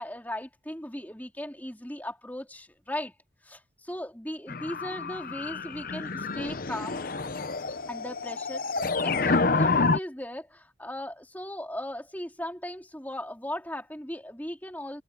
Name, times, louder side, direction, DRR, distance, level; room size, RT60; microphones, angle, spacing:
voice 1, 0.0-3.1 3.4-7.0 7.9-15.0, left 1 dB, 10° left, 3.6 m, -37 dB
sound 1, 4.5-10.0, left 3 dB, 45° left, 0.8 m, -28 dB
head